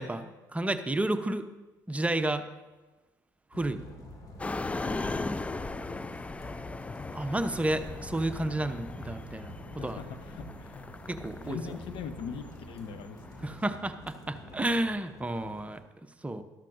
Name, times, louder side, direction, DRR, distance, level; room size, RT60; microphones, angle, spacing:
voice 1, 0.0-1.5 1.9-2.5 3.5-3.8 7.1-9.5 9.8-10.0 11.1-11.6 13.4-15.8 16.2-16.4, right 1 dB, 15° right, 9 dB, 0.8 m, -31 dB
sound 1, 3.5-15.8, equal, 40° left, 2.3 m, -47 dB
sound 2, 4.4-13.6, left 3 dB, 15° left, 0.4 m, -38 dB
voice 2, 4.6-5.8 9.7-10.9 11.4-13.5 13.7-13.8, left 6 dB, 60° left, 8 dB, 1.0 m, -42 dB
13.0 x 12.5 x 2.6 m, 1.2 s
hypercardioid pair, 60°, 10 cm